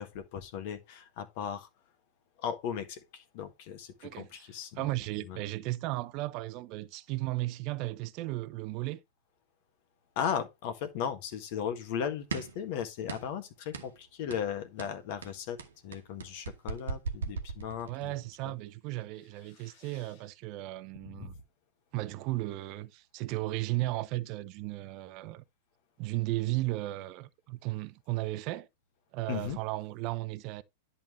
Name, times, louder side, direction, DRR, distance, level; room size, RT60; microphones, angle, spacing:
voice 1, 0.0-1.7 2.4-4.8 5.3-5.4 10.1-15.6 15.8-18.1 18.4-18.5 19.6-20.0 21.0-21.3 29.3-29.6, left 8 dB, 55° left, 1.6 m, -37 dB
voice 2, 4.0-4.5 4.8-9.0 17.9-21.3 21.9-25.4 26.0-28.7 29.1-30.6, right 18 dB, 45° right, 0.6 m, -35 dB
sound 1, 12.3-12.6 13.1-13.4 13.7-14.0 14.3-14.5 14.8-18.1, right 5 dB, 75° right, 1.2 m, -38 dB
10.5 x 5.5 x 3.1 m
figure-of-eight pair, 100°, 0 cm